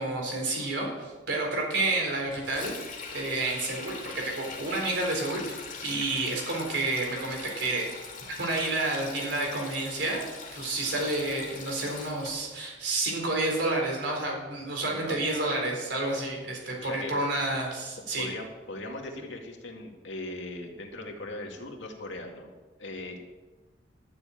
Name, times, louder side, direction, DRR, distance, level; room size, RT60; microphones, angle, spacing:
voice 1, 0.0-7.9 8.3-18.3, right 2 dB, 70° right, 0 dB, 4.0 m, -30 dB
Sink (filling or washing), 2.3-12.3, left 5 dB, 45° left, 2.9 m, -42 dB
voice 2, 14.8-15.2 16.8-17.2 18.2-22.5 22.8-23.2, left 2 dB, 85° left, 2 dB, 2.2 m, -39 dB
12.5 x 7.3 x 8.8 m, 1.2 s
head